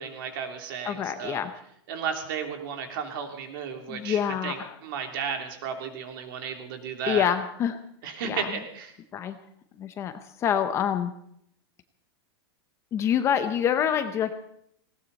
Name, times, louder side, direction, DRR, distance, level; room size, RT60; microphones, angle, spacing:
voice 1, 0.0-1.4 1.9-4.6 4.8-7.2 8.0-8.9, right 6 dB, 55° right, 4 dB, 3.1 m, -34 dB
voice 2, 0.8-1.5 3.9-4.8 7.1-7.8 8.3-8.6 9.1-9.4 9.8-10.1 10.4-11.1 12.9-14.3, left 9 dB, 20° left, 10 dB, 0.7 m, -26 dB
19.0 x 18.0 x 4.1 m, 0.70 s
supercardioid pair, 165°, 14 cm